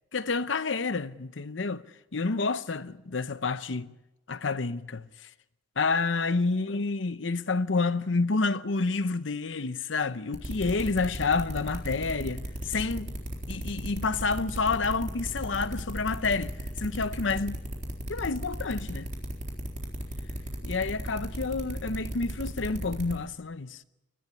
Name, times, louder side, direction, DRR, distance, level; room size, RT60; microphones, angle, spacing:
voice 1, 0.1-1.8 2.1-3.9 4.3-5.1 5.8-13.1 13.5-17.6 18.1-19.1 20.6-23.8, left 4 dB, 80° left, 0.8 m, -29 dB
sound 1, 10.3-23.2, equal, 45° right, 3.9 m, -35 dB
22.5 x 14.0 x 9.9 m
head